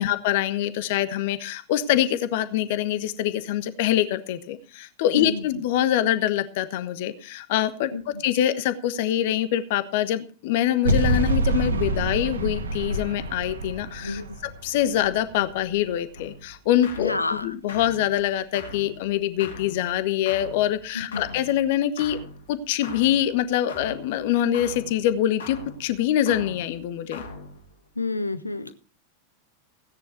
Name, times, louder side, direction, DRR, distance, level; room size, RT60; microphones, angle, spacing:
voice 1, 0.0-22.2 22.5-27.2, left 11 dB, 50° left, 13 dB, 1.2 m, -24 dB
sound 1, 10.8-16.0, right 2 dB, 70° right, 1.7 m, -27 dB
sound 2, 16.1-27.9, left 3 dB, 65° left, 2.9 m, -43 dB
voice 2, 17.0-17.5 20.9-21.2 28.0-28.7, left 3 dB, 80° left, 11 dB, 1.4 m, -29 dB
17.0 x 10.0 x 4.5 m, 0.37 s
figure-of-eight pair, 90°, 0 cm